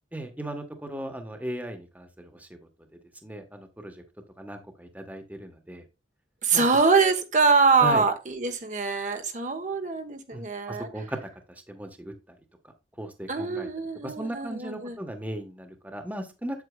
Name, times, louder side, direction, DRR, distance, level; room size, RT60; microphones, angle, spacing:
voice 1, 0.1-2.6 2.9-4.0 4.4-5.8 6.5-6.6 7.8-8.0 10.3-11.2 11.7-12.4 13.0-13.7 14.0-16.6, right 1 dB, 10° right, 6 dB, 1.2 m, -37 dB
voice 2, 6.4-10.9 13.3-15.0, right 4 dB, 40° right, 6 dB, 1.1 m, -24 dB
8.4 x 8.2 x 2.3 m, 0.27 s
head